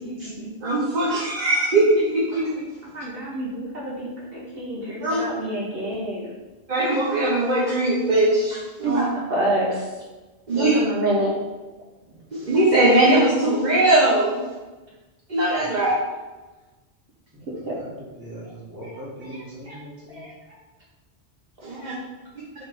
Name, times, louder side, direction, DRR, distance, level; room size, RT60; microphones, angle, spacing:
voice 1, 0.0-0.5 2.8-6.4 8.8-10.0 10.5-11.4 15.7-15.8 17.6-17.7 18.4-18.5 18.8-19.8 20.1-20.6 21.7-21.8, right 1 dB, 60° right, -5 dB, 1.4 m, -28 dB
voice 2, 0.6-2.6 5.0-5.2 6.7-9.0 10.5-10.8 12.3-14.4 15.3-15.9 21.6-21.9, right 2 dB, 45° right, -6 dB, 1.2 m, -20 dB
voice 3, 12.1-12.6 15.6-15.7 17.3-20.2, right 1 dB, 20° right, -7 dB, 2.0 m, -41 dB
7.6 x 3.9 x 3.7 m, 1.2 s
omnidirectional pair, 1.1 m